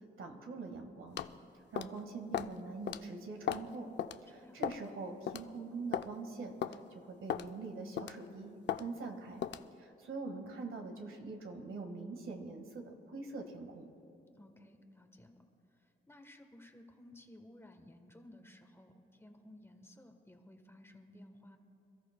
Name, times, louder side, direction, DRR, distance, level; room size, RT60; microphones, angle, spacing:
voice 1, 0.2-1.2 1.5-3.9 4.2-9.4 9.8-13.9, right 3 dB, 80° right, 4 dB, 1.6 m, -44 dB
sound 1, 1.2-1.4 1.8-2.0 2.3-2.5 2.9-3.0 3.5-3.7 4.0-4.2 4.6-4.9 5.3-5.4 5.9-6.1 6.6-6.8 7.3-7.5 8.0-8.2 8.7-8.8 9.4-9.7, left 10 dB, 60° left, 0.4 m, -36 dB
voice 2, 4.3-4.7 14.4-15.4 15.7-21.6, left 1 dB, 10° left, 5 dB, 1.1 m, -57 dB
27.5 x 13.5 x 2.2 m, 2.9 s
wide cardioid pair, 115°, 21 cm